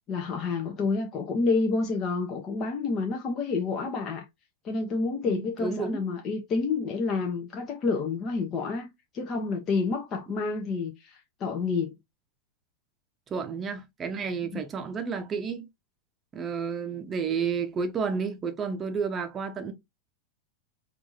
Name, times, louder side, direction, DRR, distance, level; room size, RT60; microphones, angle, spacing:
voice 1, 0.1-4.2 4.6-11.9 14.5-14.6, left 4 dB, 30° left, 0.7 m, -29 dB
voice 2, 5.2-6.0 13.3-15.7 16.3-19.7, right 5 dB, 25° right, 0.7 m, -31 dB
4.7 x 2.6 x 2.6 m
figure-of-eight pair, 90°, 0 cm